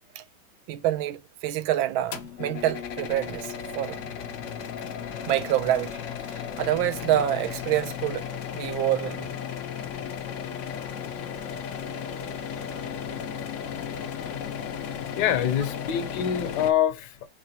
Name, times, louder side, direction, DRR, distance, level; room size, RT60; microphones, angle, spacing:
voice 1, 0.7-4.1 5.3-5.9 6.3-8.2 8.5-9.4, right 12 dB, 90° right, 1.5 m, -27 dB
sound 1, 2.1-16.7, left 8 dB, 85° left, 0.6 m, -35 dB
voice 2, 15.2-17.3, left 10 dB, 70° left, 1.1 m, -25 dB
4.8 x 3.0 x 2.7 m
omnidirectional pair, 2.2 m